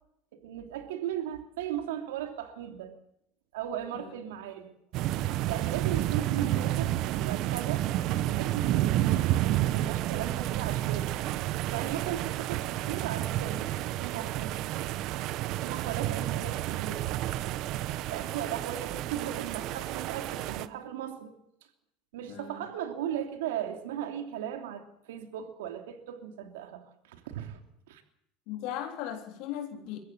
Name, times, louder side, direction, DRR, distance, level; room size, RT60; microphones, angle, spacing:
voice 1, 0.3-2.9 3.5-4.8 5.4-7.9 8.2-11.1 11.7-14.6 15.6-17.0 18.1-21.3 22.1-27.6 27.9-28.0, right 10 dB, 85° right, 5 dB, 2.9 m, -37 dB
sound 1, 4.9-20.7, right 14 dB, 60° right, 1.0 m, -30 dB
voice 2, 22.3-22.7 28.5-30.0, left 10 dB, 65° left, 4 dB, 3.6 m, -37 dB
23.0 x 14.5 x 8.6 m, 0.78 s
supercardioid pair, 105°, 0 cm